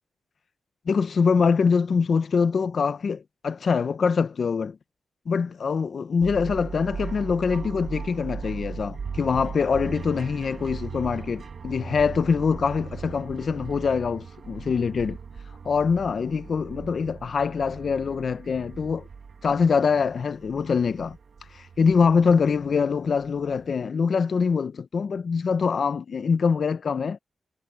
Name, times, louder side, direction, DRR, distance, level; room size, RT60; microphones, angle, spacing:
voice 1, 0.9-4.8 5.3-15.2 15.6-19.1 19.4-21.2 21.5-27.2, left 5 dB, 60° left, 0.8 m, -24 dB
sound 1, 6.2-23.7, right 5 dB, 60° right, 1.6 m, -39 dB
wide cardioid pair, 110°, 0 cm